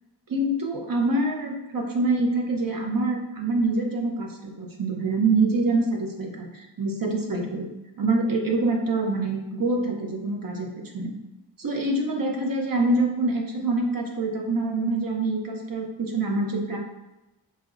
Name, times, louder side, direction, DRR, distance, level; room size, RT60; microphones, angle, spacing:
voice 1, 0.3-7.7 8.0-11.1 11.6-16.8, right 2 dB, 45° right, 1 dB, 0.6 m, -25 dB
4.9 x 2.1 x 2.4 m, 1.0 s
wide cardioid pair, 115°, 48 cm